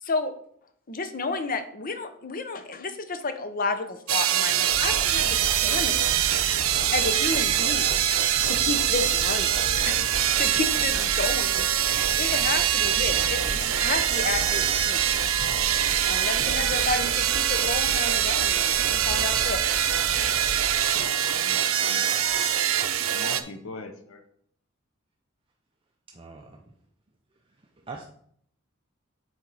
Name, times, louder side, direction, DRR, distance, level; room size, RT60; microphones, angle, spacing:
voice 1, 0.0-0.3 0.9-6.0 6.9-8.0 8.4-11.6 12.2-15.2 16.0-19.6 20.0-20.1, left 3 dB, 45° left, 9 dB, 0.7 m, -31 dB
sound 1, 4.1-23.4, right 10 dB, 85° right, 0.6 m, -24 dB
sound 2, 4.7-20.8, right 1 dB, 50° right, 0.9 m, -38 dB
voice 2, 21.3-22.2 23.1-24.2, left 3 dB, 80° left, 6 dB, 0.7 m, -41 dB
voice 3, 26.1-26.7 27.8-28.0, right 4 dB, 25° right, 2 dB, 0.5 m, -42 dB
7.5 x 4.4 x 4.0 m, 0.65 s
head